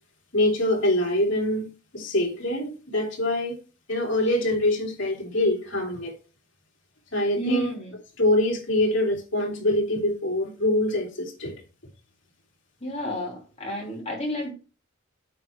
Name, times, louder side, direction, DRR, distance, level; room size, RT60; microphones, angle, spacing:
voice 1, 0.3-3.6 3.9-6.1 7.1-7.7 8.2-11.6, left 1 dB, 65° left, 3.0 m, -24 dB
voice 2, 7.4-7.9 12.8-14.5, equal, 30° left, 3.0 m, -30 dB
8.5 x 4.3 x 6.2 m
head